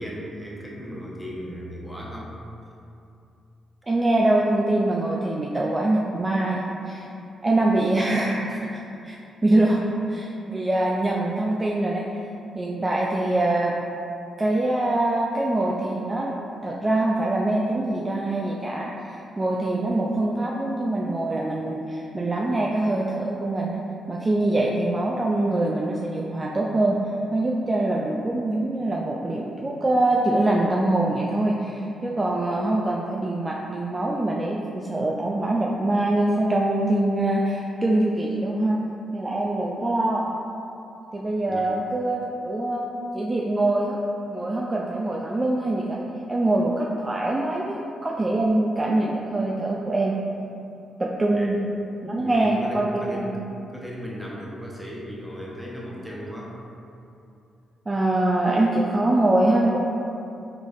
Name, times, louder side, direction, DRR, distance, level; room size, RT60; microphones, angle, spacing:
voice 1, 0.0-2.3 8.5-8.6 41.5-41.7 51.3-51.5 52.2-53.3 53.7-56.6, equal, 5° right, -5 dB, 0.9 m, -36 dB
voice 2, 3.9-7.1 7.4-9.2 9.4-9.8 10.1-12.1 12.5-13.7 14.4-16.4 16.6-27.0 27.3-38.8 39.1-40.3 41.1-42.9 43.1-44.0 44.3-46.0 46.3-50.1 51.0-51.6 52.0-53.4 57.9-59.8, right 2 dB, 30° right, -3 dB, 0.3 m, -24 dB
3.7 x 3.3 x 2.4 m, 2.7 s
hypercardioid pair, 40°, 0 cm